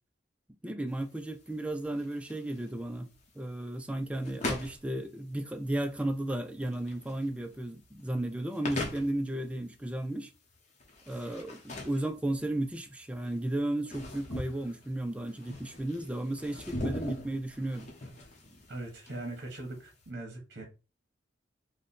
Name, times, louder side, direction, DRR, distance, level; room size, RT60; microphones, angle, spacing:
voice 1, 0.6-3.1 3.4-10.3 11.1-17.9, right 1 dB, 5° right, 0.3 m, -34 dB
sound 1, 0.9-20.1, left 1 dB, 40° left, 0.8 m, -42 dB
voice 2, 18.7-20.6, right 2 dB, 55° right, 1.1 m, -40 dB
3.2 x 2.2 x 4.1 m
head